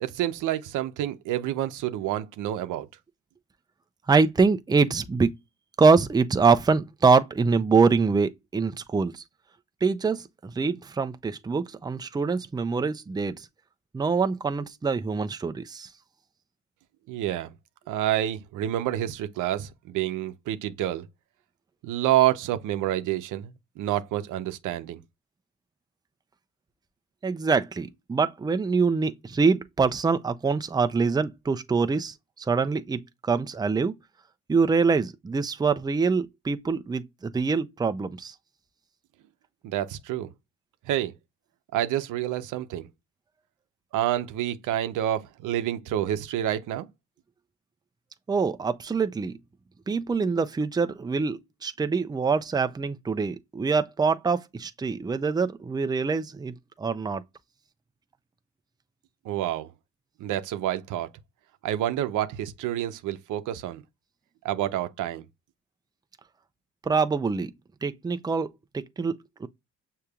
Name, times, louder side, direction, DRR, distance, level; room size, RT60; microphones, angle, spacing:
voice 1, 0.0-2.9 17.1-17.5 17.9-21.1 21.8-25.0 39.6-40.3 40.9-41.1 41.7-42.9 43.9-46.9 59.2-59.7 60.2-61.1 61.6-63.8 64.4-65.2, right 12 dB, 85° right, 0.7 m, -28 dB
voice 2, 4.1-5.4 5.8-9.2 9.8-13.5 13.9-15.9 27.2-33.9 34.5-38.3 48.3-49.4 49.9-57.2 66.8-67.5 67.8-69.5, right 4 dB, 15° right, 0.5 m, -24 dB
6.5 x 2.9 x 2.3 m
cardioid pair, 90°, 30 cm